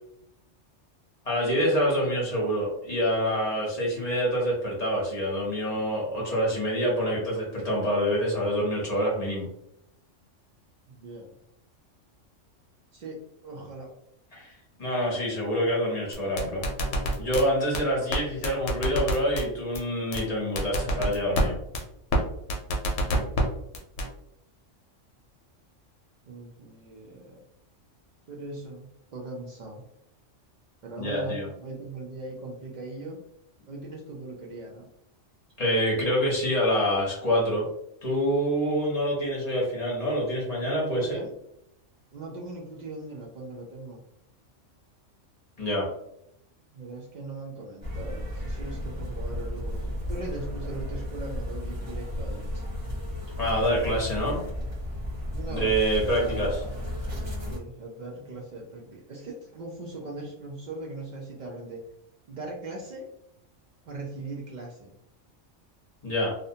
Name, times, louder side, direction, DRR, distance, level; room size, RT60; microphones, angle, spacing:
voice 1, 1.2-9.5 14.3-14.5 14.8-16.6 17.2-21.6 31.0-31.5 35.6-37.7 38.0-41.2 45.6-45.9 53.4-54.4 55.5-56.6 66.0-66.3, equal, 40° left, -4 dB, 0.7 m, -26 dB
voice 2, 10.9-11.3 12.9-13.9 22.9-23.3 26.3-27.4 28.3-29.8 30.8-33.2 33.6-34.9 41.0-41.3 42.1-44.0 46.7-52.8 55.3-55.8 56.1-57.0 57.5-61.8 62.3-63.1 63.9-64.9, right 2 dB, 65° right, -2 dB, 0.4 m, -40 dB
sound 1, 16.1-17.4 17.7-17.8 18.1-18.2 18.4-19.4 19.7-19.8 20.1-20.2 20.6-21.4 21.7-21.8 22.1-22.2 22.5-23.4 23.7-24.1, equal, 70° left, 0.9 m, -25 dB
sound 2, 47.8-57.6, left 1 dB, 15° right, 0.8 m, -33 dB
2.6 x 2.1 x 2.7 m, 0.78 s
omnidirectional pair, 1.3 m